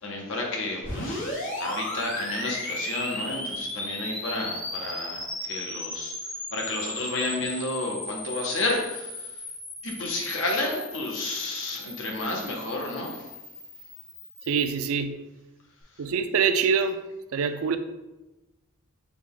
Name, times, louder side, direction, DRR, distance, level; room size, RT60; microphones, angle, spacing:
voice 1, 0.0-6.2 6.5-9.4 9.8-13.3 15.9-16.1, left 2 dB, 60° left, 0.7 m, -31 dB
sound 1, 0.8-14.7, left 1 dB, 35° left, 1.1 m, -36 dB
voice 2, 14.5-15.2 16.0-17.0 17.3-17.8, right 6 dB, 75° right, 0.4 m, -24 dB
6.0 x 2.2 x 3.6 m
head